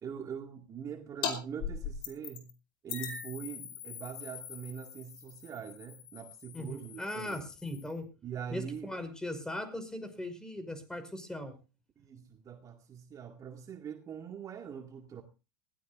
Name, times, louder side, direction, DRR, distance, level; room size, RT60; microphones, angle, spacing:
voice 1, 0.0-2.5 2.8-7.5 8.2-8.9 12.0-15.2, right 8 dB, 35° right, 2.2 m, -43 dB
sound 1, 1.2-1.3 1.6-2.5 2.9-8.0, left 8 dB, 50° left, 4.8 m, -41 dB
voice 2, 6.5-8.1 8.5-11.5, left 1 dB, 5° left, 5.4 m, -39 dB
20.5 x 17.0 x 2.6 m
hypercardioid pair, 90°, 11 cm